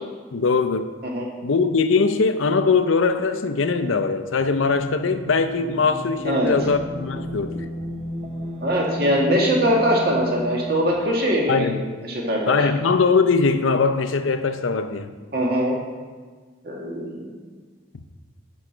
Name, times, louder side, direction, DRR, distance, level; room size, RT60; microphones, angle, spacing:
voice 1, 0.3-0.9 1.4-7.6 11.5-11.8 12.5-15.2, left 4 dB, 80° left, 0.6 m, -21 dB
sound 1, 4.6-10.9, equal, 30° right, 0.9 m, -33 dB
voice 2, 8.6-11.8 12.1-12.7 15.3-15.8 16.6-17.3, equal, 50° right, 1.9 m, -22 dB
11.0 x 6.2 x 4.4 m
head